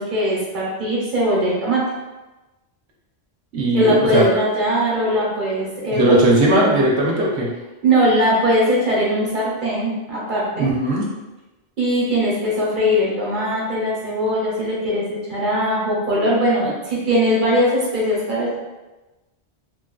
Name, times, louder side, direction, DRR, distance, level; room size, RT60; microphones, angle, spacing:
voice 1, 0.0-1.8 3.7-6.7 7.8-10.7 11.8-18.6, equal, 50° right, -5 dB, 1.1 m, -20 dB
voice 2, 3.5-4.3 5.9-7.5 10.6-11.1, right 1 dB, 75° right, -2 dB, 0.9 m, -17 dB
3.0 x 2.4 x 2.3 m, 1.1 s
omnidirectional pair, 1.1 m